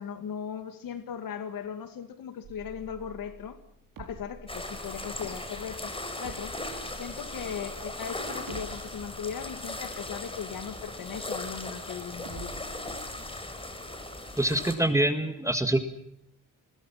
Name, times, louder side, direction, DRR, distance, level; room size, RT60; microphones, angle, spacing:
voice 1, 0.0-3.6 4.0-5.9 6.2-6.6 6.9-12.5, left 8 dB, 85° left, 9 dB, 2.3 m, -38 dB
sound 1, 2.4-11.7 12.2-13.3, right 4 dB, 85° right, 4.8 m, -49 dB
sound 2, 4.5-14.8, left 2 dB, 15° left, 4.5 m, -38 dB
voice 2, 14.4-15.8, right 1 dB, 10° right, 8 dB, 1.9 m, -25 dB
30.0 x 21.5 x 5.9 m, 0.76 s
wide cardioid pair, 140°, 33 cm